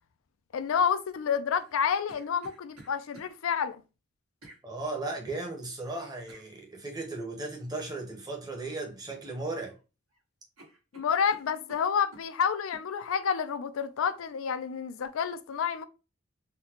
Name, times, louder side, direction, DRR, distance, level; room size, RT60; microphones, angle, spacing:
voice 1, 0.5-3.8 10.9-15.8, left 7 dB, 75° left, 0.4 m, -29 dB
sound 1, 1.6-3.3 4.4-4.6 6.3-6.5 8.5-8.8 9.1-9.8 10.1-10.2 10.6-12.3 12.7-12.9, right 1 dB, 85° right, 1.6 m, -53 dB
voice 2, 4.6-9.8, right 2 dB, 20° right, 0.8 m, -36 dB
3.9 x 2.1 x 2.8 m
head